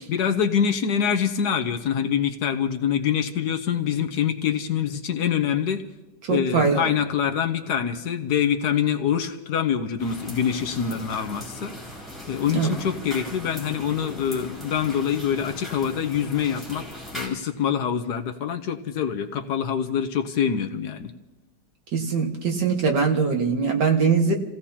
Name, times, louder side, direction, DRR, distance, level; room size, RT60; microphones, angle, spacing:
voice 1, 0.1-5.8 6.3-11.8 12.3-16.8 17.1-21.1, left 8 dB, 65° left, 5 dB, 1.4 m, -25 dB
voice 2, 6.3-6.8 12.5-12.7 21.9-24.3, right 5 dB, 70° right, 2 dB, 2.3 m, -22 dB
sound 1, 10.0-17.3, equal, ahead, 4.0 m, -39 dB
29.5 x 16.0 x 2.9 m, 1.0 s
omnidirectional pair, 1.9 m